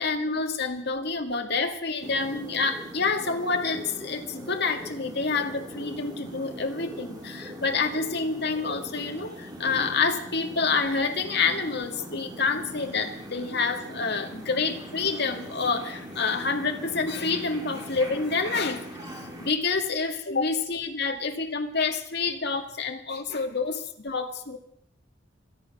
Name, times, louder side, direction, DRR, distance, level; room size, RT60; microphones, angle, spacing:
voice 1, 0.0-18.8 19.1-24.6, left 4 dB, 60° left, 5 dB, 2.1 m, -28 dB
sound 1, 2.0-19.5, equal, 20° right, 2.6 m, -41 dB
25.5 x 9.3 x 6.1 m, 0.70 s
head